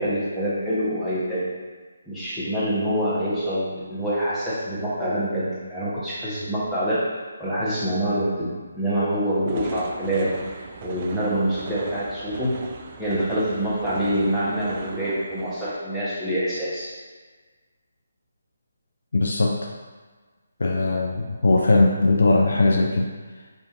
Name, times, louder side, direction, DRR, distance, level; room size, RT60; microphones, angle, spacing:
voice 1, 0.0-1.5 2.1-12.6 13.0-17.0, right 1 dB, ahead, -13 dB, 1.1 m, -26 dB
sound 1, 9.5-15.7, right 5 dB, 35° right, 0.4 m, -38 dB
voice 2, 19.1-19.6 20.6-23.1, left 2 dB, 65° left, 0 dB, 0.5 m, -19 dB
4.9 x 2.8 x 3.7 m, 1.4 s
figure-of-eight pair, 145°, 0 cm